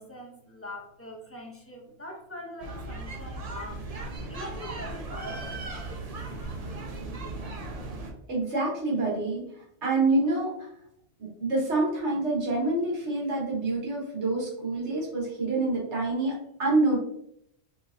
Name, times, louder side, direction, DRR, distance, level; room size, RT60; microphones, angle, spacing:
voice 1, 0.0-3.9 4.3-5.6, left 1 dB, 15° left, -1 dB, 0.5 m, -42 dB
sound 1, 2.6-8.1, right 2 dB, 40° right, 0.7 m, -37 dB
voice 2, 8.3-9.4 9.8-10.5 11.2-16.3 16.6-17.0, right 2 dB, 75° right, -3 dB, 1.6 m, -26 dB
4.8 x 3.5 x 2.6 m, 0.73 s
omnidirectional pair, 1.2 m